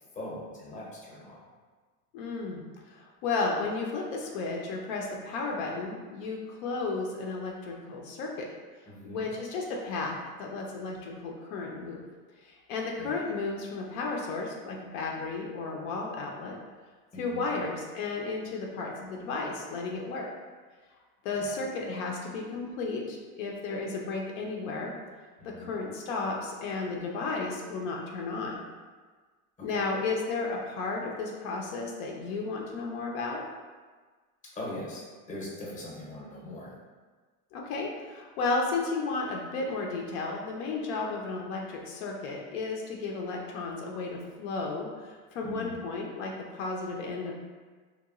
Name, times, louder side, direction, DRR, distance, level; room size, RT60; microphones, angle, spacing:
voice 1, 0.1-1.4 8.9-9.2 13.0-13.1 17.1-17.5 21.3-21.6 25.4-25.7 29.6-29.8 34.5-36.7 45.4-45.8, left 1 dB, 20° left, -5 dB, 0.7 m, -41 dB
voice 2, 2.1-2.6 2.9-8.5 9.0-12.0 12.4-16.6 17.2-20.3 21.2-24.9 25.4-28.6 29.6-33.4 37.5-47.3, left 3 dB, 75° left, 0 dB, 0.6 m, -33 dB
2.9 x 2.3 x 2.4 m, 1.4 s
supercardioid pair, 125°, 40 cm